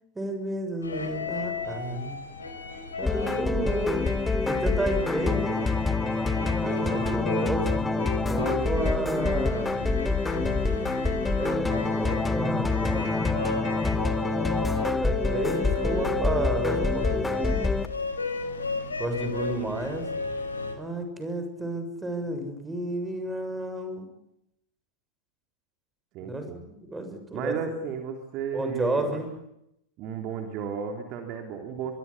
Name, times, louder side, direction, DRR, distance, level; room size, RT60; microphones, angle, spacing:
voice 1, 0.1-2.2 3.0-4.1 4.5-5.6 6.6-7.8 8.3-9.9 11.4-13.2 15.0-17.5 19.0-20.1 20.8-24.1 26.2-27.5 28.5-29.3, right 1 dB, 10° right, 7 dB, 6.8 m, -31 dB
sound 1, 0.8-20.8, left 3 dB, 75° left, 5.3 m, -35 dB
sound 2, 3.0-17.9, left 3 dB, 10° left, 1.8 m, -26 dB
voice 2, 26.1-26.6 27.3-29.2 30.0-32.0, right 6 dB, 40° right, 4 dB, 3.5 m, -34 dB
26.0 x 23.0 x 8.6 m, 0.81 s
figure-of-eight pair, 90°, 0 cm